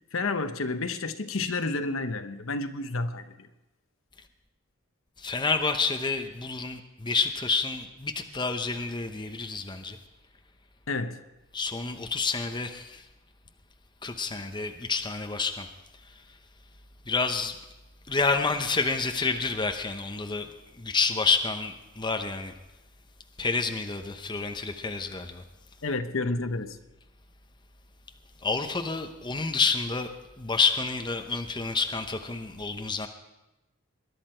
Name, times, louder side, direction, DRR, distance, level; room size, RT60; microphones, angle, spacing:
voice 1, 0.1-3.3 10.9-11.2 25.8-26.8, left 3 dB, 70° left, 0.9 m, -30 dB
voice 2, 5.2-10.0 11.5-13.0 14.0-15.7 17.1-17.6 18.1-20.5 20.8-22.5 23.4-25.4 28.4-30.1 30.4-33.1, left 4 dB, 20° left, 0.8 m, -29 dB
21.0 x 11.0 x 4.4 m
head